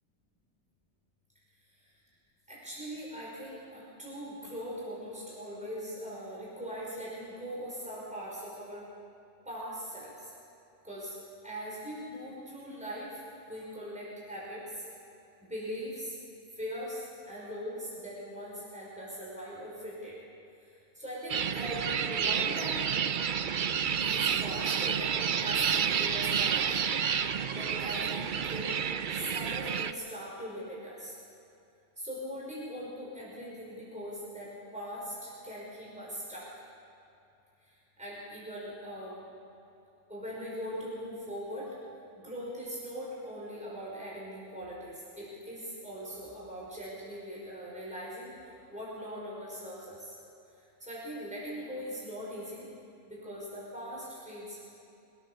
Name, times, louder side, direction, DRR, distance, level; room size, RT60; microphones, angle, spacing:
voice 1, 2.5-8.8 9.5-10.3 10.8-11.2 11.4-14.9 15.4-16.2 16.5-20.2 20.6-22.8 23.9-28.7 29.1-31.2 32.0-36.6 37.6-39.2 40.1-41.7 42.1-50.2 50.5-52.7 53.1-54.6, equal, 5° right, -7 dB, 5.6 m, -41 dB
sound 1, 21.3-29.9, right 7 dB, 50° right, 0.7 m, -30 dB
22.5 x 17.0 x 7.1 m, 2.7 s
omnidirectional pair, 1.2 m